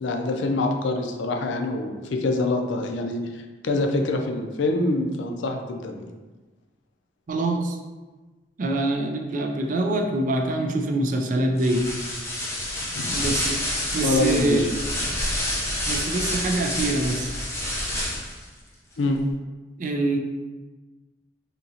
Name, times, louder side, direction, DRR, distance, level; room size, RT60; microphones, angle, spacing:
voice 1, 0.0-6.1 12.9-13.1 14.0-14.7 19.0-19.2, left 2 dB, 80° left, 4 dB, 0.4 m, -25 dB
voice 2, 7.3-7.8 8.6-11.9 13.1-13.6 13.9-14.7 15.9-17.3 19.8-20.2, right 2 dB, 45° right, 3 dB, 0.4 m, -25 dB
sound 1, 11.6-18.4, left 1 dB, 15° left, 0.7 m, -28 dB
3.7 x 2.9 x 2.7 m, 1.2 s
head